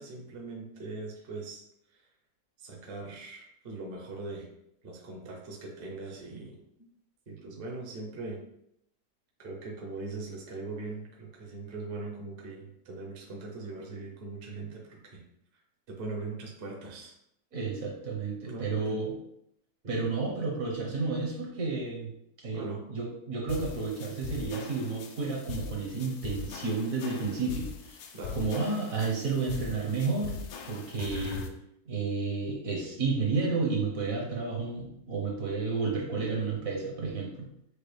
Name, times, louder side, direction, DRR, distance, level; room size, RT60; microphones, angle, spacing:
voice 1, 0.0-1.6 1.9-2.0 2.6-4.5 4.8-6.6 7.3-8.4 9.4-15.2 15.9-17.1 18.4-19.1 19.8-20.1 22.5-22.8 28.1-28.4, right 3 dB, 45° right, -1 dB, 0.9 m, -40 dB
voice 2, 17.5-19.1 19.9-22.1 22.4-22.6 22.9-30.4 30.6-31.4 31.8-37.5, right 4 dB, 60° right, -2 dB, 1.5 m, -31 dB
sound 1, 23.5-31.5, left 5 dB, 80° left, 1.1 m, -41 dB
6.6 x 2.4 x 3.3 m, 0.75 s
omnidirectional pair, 1.6 m